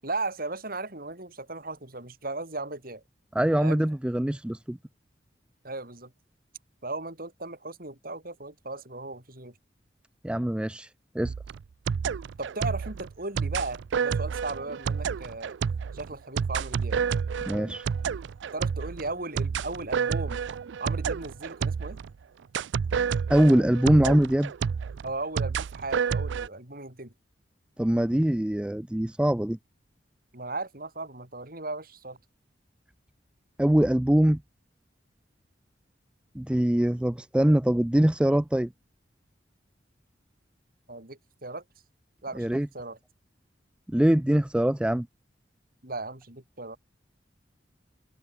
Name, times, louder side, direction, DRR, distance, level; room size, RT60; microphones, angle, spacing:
voice 1, 0.0-3.0 3.6-3.8 5.6-6.1 6.8-9.6 12.4-15.6 15.9-17.0 18.5-20.4 20.8-22.0 25.0-27.1 30.3-32.2 40.9-41.6 42.2-43.0 45.8-46.8, right 2 dB, 55° right, 6.5 m, -36 dB
voice 2, 3.4-4.8 10.2-11.3 17.5-17.9 23.3-24.5 27.8-29.6 33.6-34.4 36.4-38.7 42.4-42.7 43.9-45.1, right 1 dB, 5° right, 0.3 m, -23 dB
sound 1, 11.2-22.1 22.5-26.5, right 6 dB, 85° right, 0.4 m, -30 dB
head